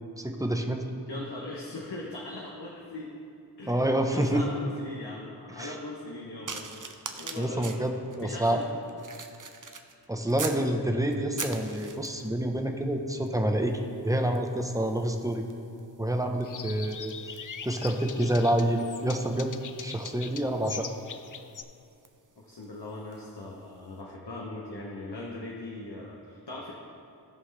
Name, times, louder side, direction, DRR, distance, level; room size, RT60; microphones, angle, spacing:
voice 1, 0.1-0.8 3.6-4.4 5.5-5.7 7.4-8.6 10.1-15.5 16.0-17.4 17.6-19.5 19.8-20.9, right 1 dB, 10° right, 4 dB, 0.8 m, -28 dB
voice 2, 1.1-3.1 3.6-6.7 7.1-8.6 11.0-11.2 22.4-26.7, left 2 dB, 75° left, -3 dB, 1.0 m, -40 dB
sound 1, 6.5-10.7 11.1-12.4 13.1-13.4 13.6-23.3 24.0-24.2, right 5 dB, 50° right, 0.7 m, -44 dB
sound 2, 16.4-21.6, left 6 dB, 50° left, 0.5 m, -42 dB
16.0 x 5.5 x 3.3 m, 2.5 s
wide cardioid pair, 50°, 40 cm